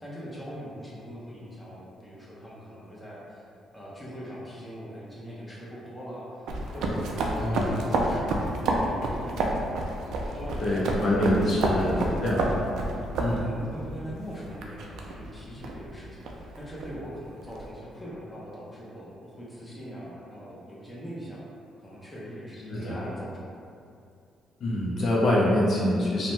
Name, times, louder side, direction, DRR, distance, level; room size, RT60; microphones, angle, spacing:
voice 1, 0.0-3.5 3.7-9.4 10.3-12.3 13.4-21.4 21.8-23.6, equal, 10° left, -7 dB, 0.7 m, -41 dB
sound 1, 6.5-17.7, right 2 dB, 80° right, 0.3 m, -30 dB
voice 2, 7.4-7.7 10.6-12.5 13.2-13.5 22.7-23.0 24.6-26.3, left 1 dB, 55° left, -6 dB, 0.5 m, -25 dB
2.6 x 2.1 x 3.1 m, 2.4 s
cardioid pair, 90°, 0 cm